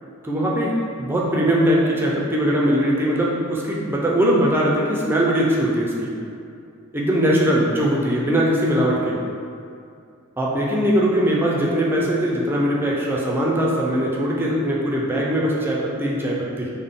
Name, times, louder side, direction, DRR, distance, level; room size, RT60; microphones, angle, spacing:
voice 1, 0.2-6.1 6.9-9.2 10.4-16.7, equal, 10° right, -4 dB, 0.4 m, -21 dB
3.6 x 2.1 x 3.7 m, 2.5 s
head